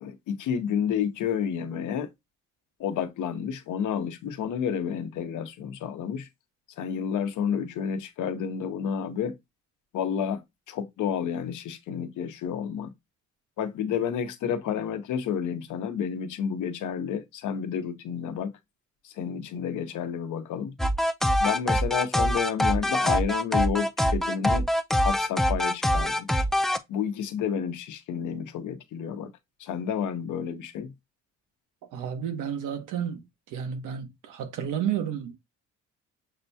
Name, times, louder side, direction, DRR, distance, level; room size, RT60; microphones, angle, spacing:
voice 1, 0.0-2.1 2.8-6.3 6.8-9.3 9.9-10.4 10.7-12.9 13.6-18.5 19.0-20.7 21.4-24.7 24.9-26.3 26.9-29.3 29.6-30.9, left 8 dB, 80° left, 0.8 m, -30 dB
sound 1, 20.8-26.8, equal, ahead, 0.4 m, -24 dB
voice 2, 31.9-33.2 33.5-35.3, right 9 dB, 85° right, 1.0 m, -31 dB
6.5 x 2.2 x 2.7 m
cardioid pair, 90°, 30 cm